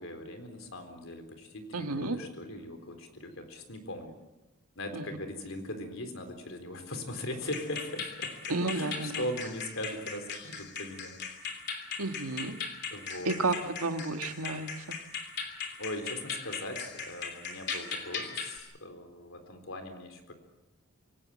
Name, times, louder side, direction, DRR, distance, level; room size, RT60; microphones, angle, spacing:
voice 1, 0.0-4.1 4.8-8.3 8.7-11.2 12.9-13.4 15.8-20.3, left 1 dB, 65° left, 6 dB, 3.9 m, -40 dB
voice 2, 1.7-2.2 4.9-5.1 8.5-9.2 12.0-12.6 13.3-15.0, right 3 dB, 90° right, 7 dB, 1.7 m, -32 dB
sound 1, 7.5-18.6, left 5 dB, 50° left, 3.3 m, -39 dB
26.0 x 18.0 x 7.6 m, 1.0 s
head